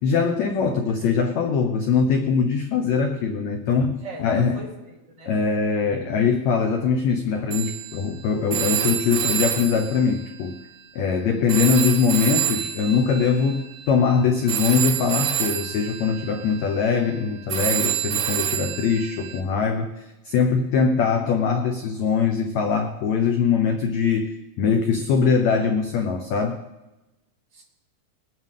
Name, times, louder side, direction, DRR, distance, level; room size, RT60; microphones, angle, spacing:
voice 1, 0.0-4.6 5.3-10.6 10.9-26.6, left 5 dB, 80° left, 5 dB, 1.6 m, -22 dB
voice 2, 4.0-5.3 27.5-27.6, right 3 dB, 30° right, -8 dB, 6.7 m, -40 dB
Telephone, 7.5-11.1 11.5-19.4, right 11 dB, 75° right, 2.3 m, -28 dB
21.5 x 9.3 x 3.7 m, 1.1 s
omnidirectional pair, 4.3 m